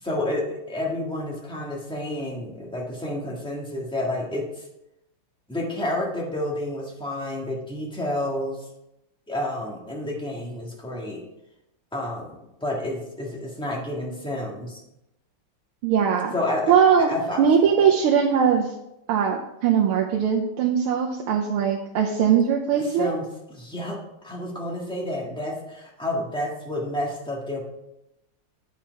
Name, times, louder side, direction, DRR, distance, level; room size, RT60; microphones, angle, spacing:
voice 1, 0.0-4.5 5.5-8.6 9.3-11.2 11.9-14.8 16.3-16.7 17.1-17.5 17.8-17.9 22.9-23.2 23.5-24.0 24.2-27.6, left 1 dB, 5° left, -2 dB, 1.1 m, -30 dB
voice 2, 15.8-16.3 16.7-18.7 19.1-23.1, right 7 dB, 85° right, 0 dB, 1.6 m, -20 dB
8.5 x 5.8 x 4.6 m, 0.87 s
omnidirectional pair, 2.4 m